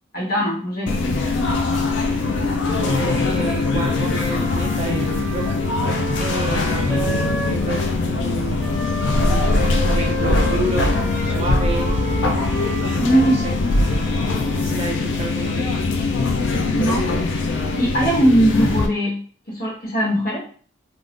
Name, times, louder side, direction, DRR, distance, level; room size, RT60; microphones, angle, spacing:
voice 1, 0.1-1.0 13.0-13.4 16.7-17.1 17.8-19.2 19.5-20.4, right 1 dB, 50° left, -4 dB, 1.3 m, -20 dB
sound 1, 0.9-18.9, left 3 dB, 65° left, 0.4 m, -21 dB
voice 2, 2.0-2.3 2.8-5.5 6.2-8.9 9.2-12.0 12.8-13.6 14.4-15.7, right 3 dB, 30° right, -1 dB, 0.6 m, -30 dB
Wind instrument woodwind instrument, 2.1-7.9 8.6-15.1, equal, ahead, 0.8 m, -33 dB
2.5 x 2.4 x 3.6 m, 0.43 s
head